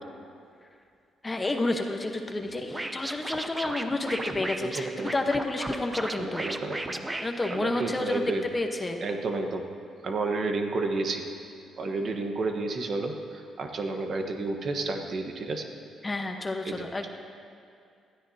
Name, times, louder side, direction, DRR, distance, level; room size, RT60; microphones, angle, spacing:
voice 1, 1.2-6.4 7.2-8.2 8.5-9.0 16.0-17.1, left 2 dB, 20° left, 4 dB, 1.1 m, -30 dB
Scratching (performance technique), 2.7-8.2, right 2 dB, 15° right, 0.7 m, -35 dB
voice 2, 4.6-5.1 6.2-7.0 7.5-8.4 9.0-9.6 10.0-11.2 11.8-15.7 16.6-17.1, right 3 dB, 55° right, 4 dB, 1.2 m, -31 dB
20.0 x 13.0 x 2.8 m, 2.4 s
cardioid pair, 90°, 0 cm